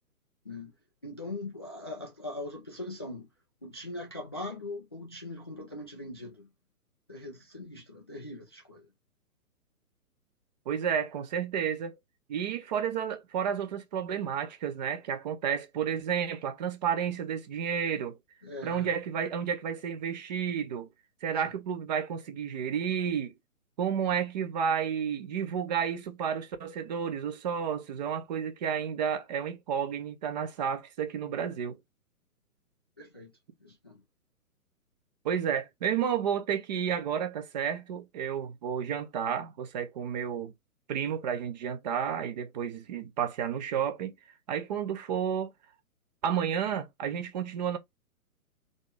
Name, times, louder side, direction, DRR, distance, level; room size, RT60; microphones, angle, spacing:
voice 1, 1.0-3.3 3.6-6.5 7.1-8.9 18.4-18.9 21.4-21.5 33.0-33.3 33.6-34.0, left 2 dB, 20° left, 0.4 m, -41 dB
voice 2, 10.7-11.9 12.3-18.2 18.6-20.9 21.2-23.3 23.8-31.8 35.2-40.5 40.9-44.1 44.5-45.5 46.2-47.8, right 8 dB, 30° right, 0.7 m, -31 dB
3.9 x 3.8 x 3.4 m
figure-of-eight pair, 130°, 45 cm